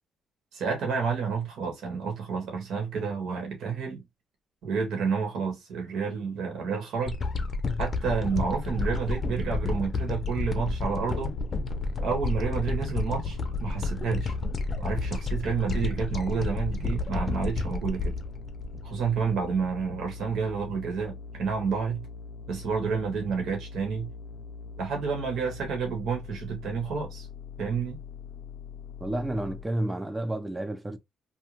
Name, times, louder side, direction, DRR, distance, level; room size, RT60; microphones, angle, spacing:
voice 1, 0.5-4.0 4.6-7.2 7.8-11.3 12.0-14.3 14.8-18.1 18.8-22.1 22.5-24.1 24.8-27.3 27.6-28.0, right 5 dB, 80° right, 1.2 m, -30 dB
sound 1, 7.1-19.4 19.9-20.0, left 3 dB, 40° left, 0.6 m, -31 dB
sound 2, 11.3-29.6, left 4 dB, 90° left, 0.5 m, -43 dB
voice 2, 29.0-31.0, right 1 dB, 15° right, 0.5 m, -30 dB
2.7 x 2.2 x 2.9 m
cardioid pair, 90°, 0 cm